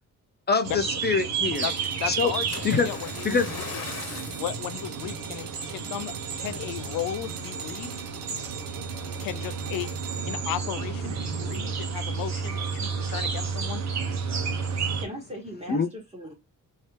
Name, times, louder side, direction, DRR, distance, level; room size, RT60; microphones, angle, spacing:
voice 1, 0.5-1.7 2.1-2.3 2.6-2.9 3.2-3.5 15.7-15.9, left 5 dB, 30° left, 0.5 m, -24 dB
sound 1, 0.6-15.0, right 5 dB, 55° right, 0.9 m, -32 dB
sound 2, 1.5-10.6, right 8 dB, 85° right, 0.8 m, -42 dB
voice 2, 1.6-3.8 4.4-8.0 9.2-9.9 10.3-13.8, left 11 dB, 85° left, 0.5 m, -35 dB
Splash splatter, 2.5-4.6 5.2-5.4 6.0-6.1, left 4 dB, 50° left, 1.2 m, -35 dB
voice 3, 15.0-16.3, equal, 20° right, 1.5 m, -39 dB
3.1 x 2.7 x 3.0 m
cardioid pair, 100°, 33 cm